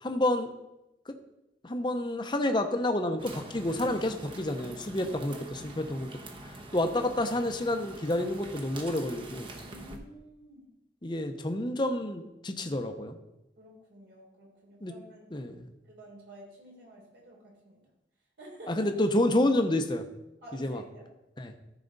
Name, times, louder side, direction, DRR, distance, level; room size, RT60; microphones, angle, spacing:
voice 1, 0.0-0.5 1.6-6.1 6.4-9.5 11.0-13.2 14.8-14.9 15.3-15.7 18.7-20.0 20.6-20.8 21.4-21.5, left 1 dB, 25° left, 6 dB, 0.7 m, -29 dB
sound 1, 3.2-10.0, right 2 dB, 30° right, 0.9 m, -45 dB
voice 2, 9.5-10.6 13.6-15.3 15.8-17.8 18.4-18.9 20.4-21.0, right 1 dB, 70° right, -3 dB, 3.6 m, -50 dB
14.0 x 4.9 x 4.0 m, 0.92 s
head